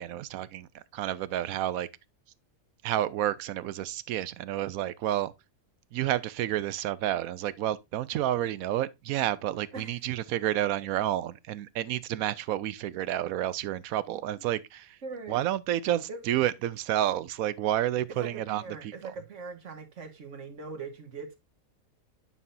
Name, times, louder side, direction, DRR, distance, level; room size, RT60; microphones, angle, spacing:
voice 1, 0.0-1.9 2.8-5.3 5.9-15.0 15.3-19.1, right 12 dB, 75° right, 1.0 m, -30 dB
voice 2, 15.0-15.4 16.1-16.2 18.2-21.4, right 4 dB, 55° right, 1.7 m, -41 dB
9.5 x 5.6 x 2.6 m
omnidirectional pair, 1.5 m